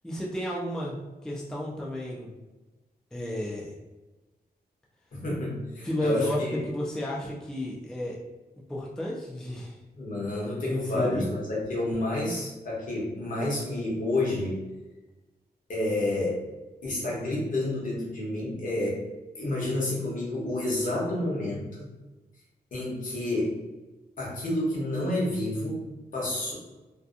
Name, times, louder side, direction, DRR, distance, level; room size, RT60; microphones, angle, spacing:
voice 1, 0.0-1.0 1.2-2.3 3.1-3.7 5.8-8.2 8.7-9.8 10.6-11.3, left 1 dB, 5° left, -4 dB, 0.3 m, -32 dB
voice 2, 5.1-6.6 9.9-14.6 15.7-16.4 16.8-19.0 19.3-21.9 22.7-23.6 24.2-25.8 26.1-26.5, left 1 dB, 55° left, -5 dB, 0.9 m, -29 dB
2.7 x 2.2 x 2.4 m, 1.1 s
wide cardioid pair, 155°, 16 cm